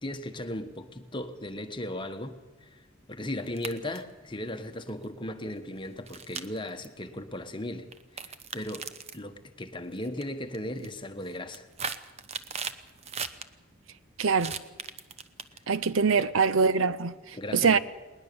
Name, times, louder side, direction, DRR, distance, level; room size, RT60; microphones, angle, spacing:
voice 1, 0.0-2.8 3.1-8.9 9.1-11.7 16.1-16.3 17.3-17.8, left 1 dB, 25° left, 1.3 m, -37 dB
sound 1, 3.5-4.1 4.9-5.0 6.1-6.8 7.9-9.2 10.0-10.2 10.5-10.9 11.3-13.4 14.4-15.8, right 6 dB, 30° right, 0.8 m, -37 dB
voice 2, 14.2-14.6 15.7-17.1 17.5-17.8, right 5 dB, 75° right, 0.7 m, -23 dB
20.0 x 19.5 x 6.9 m
head